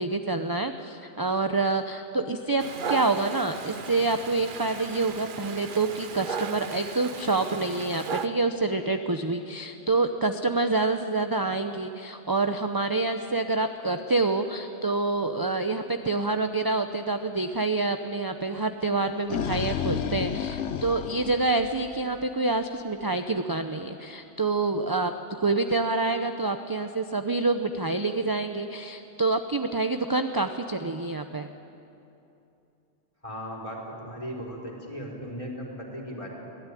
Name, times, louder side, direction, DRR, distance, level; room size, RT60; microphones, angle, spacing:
voice 1, 0.0-25.1 25.4-31.5, right 3 dB, 25° right, 7 dB, 0.7 m, -27 dB
Dog, 2.6-8.3, right 6 dB, 50° right, 0.9 m, -36 dB
sound 1, 19.0-22.2, left 8 dB, 85° left, 1.1 m, -31 dB
voice 2, 33.2-36.3, equal, 30° left, -1 dB, 4.2 m, -37 dB
23.0 x 16.5 x 10.0 m, 2.8 s
omnidirectional pair, 1.2 m